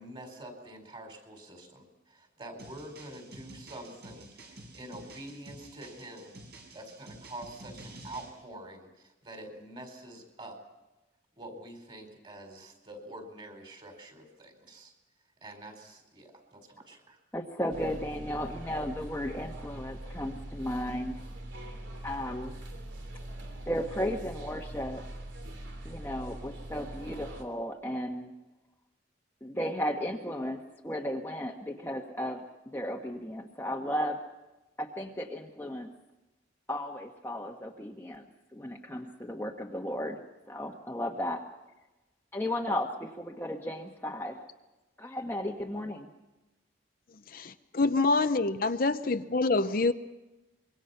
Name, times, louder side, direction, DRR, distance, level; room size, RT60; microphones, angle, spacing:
voice 1, 0.0-6.4 6.7-10.6 11.4-14.9 15.4-17.2, right 1 dB, 25° right, 4 dB, 4.6 m, -46 dB
sound 1, 2.6-8.3, right 1 dB, 55° right, 6.1 m, -50 dB
voice 2, 17.3-21.2 22.0-22.6 23.7-25.0 25.8-28.3 29.4-32.4 32.7-34.2 34.8-35.9 36.7-38.2 38.5-40.2 40.5-41.5 42.3-44.3 45.0-46.1, equal, 10° left, 0 dB, 1.3 m, -34 dB
sound 2, 17.7-27.4, right 1 dB, 70° right, 3.1 m, -42 dB
voice 3, 47.3-49.9, left 3 dB, 50° left, 9 dB, 0.7 m, -26 dB
25.5 x 23.0 x 5.7 m, 1.0 s
head